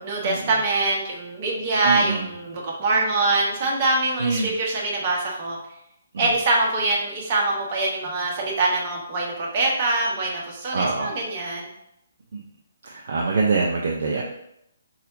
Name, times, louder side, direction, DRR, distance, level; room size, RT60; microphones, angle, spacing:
voice 1, 0.0-5.6 6.2-11.7 14.1-14.2, right 2 dB, 35° right, -2 dB, 1.2 m, -24 dB
voice 2, 1.8-2.3 4.2-4.5 6.1-6.3 10.7-11.1 12.9-14.2, right 4 dB, 55° right, -1 dB, 0.5 m, -24 dB
4.9 x 4.1 x 2.6 m, 0.78 s
figure-of-eight pair, 135°, 0 cm